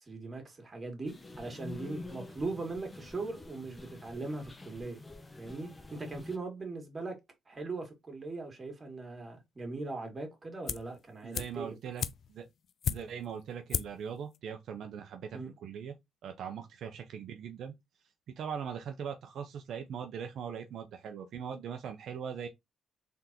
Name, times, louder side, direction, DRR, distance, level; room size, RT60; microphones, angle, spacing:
voice 1, 0.1-5.0 5.4-7.2 7.5-11.8 15.3-15.5, right 3 dB, 25° right, 2.1 m, -40 dB
sound 1, 1.1-6.4, left 2 dB, 25° left, 0.8 m, -47 dB
sound 2, 10.7-11.0 11.3-13.3 13.7-14.1 14.3-14.4, left 8 dB, 60° left, 0.4 m, -35 dB
voice 2, 11.2-12.0 12.3-12.5 12.9-15.9 16.2-17.7 18.3-22.5, right 7 dB, 70° right, 0.6 m, -40 dB
3.8 x 3.4 x 2.8 m
cardioid pair, 90°, 0 cm